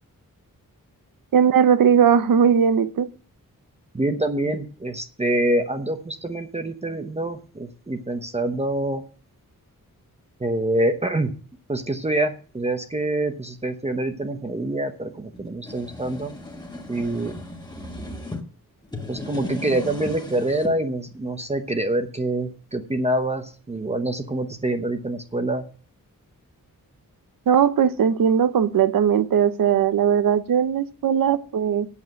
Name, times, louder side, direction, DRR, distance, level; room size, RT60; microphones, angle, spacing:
voice 1, 1.3-3.1 27.5-31.9, right 8 dB, 75° right, 13 dB, 0.8 m, -19 dB
voice 2, 3.9-9.0 10.4-11.3 11.7-16.3 16.9-17.4 19.1-25.6, right 1 dB, 20° right, 7 dB, 0.8 m, -26 dB
sound 1, 15.3-18.4 18.8-20.8, left 1 dB, 10° left, 1.4 m, -36 dB
8.4 x 7.1 x 7.6 m, 0.40 s
wide cardioid pair, 175°, 34 cm